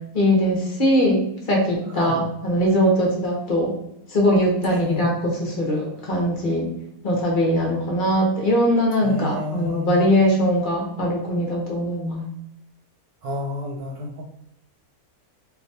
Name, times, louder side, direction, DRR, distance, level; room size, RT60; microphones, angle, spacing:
voice 1, 0.1-1.2 1.5-3.7 4.1-6.7 7.0-12.2, equal, 50° left, -2 dB, 0.6 m, -21 dB
voice 2, 1.8-2.2 4.7-5.1 9.0-10.2 13.2-14.2, left 1 dB, 80° right, -2 dB, 1.2 m, -31 dB
3.6 x 2.6 x 2.6 m, 0.77 s
omnidirectional pair, 1.6 m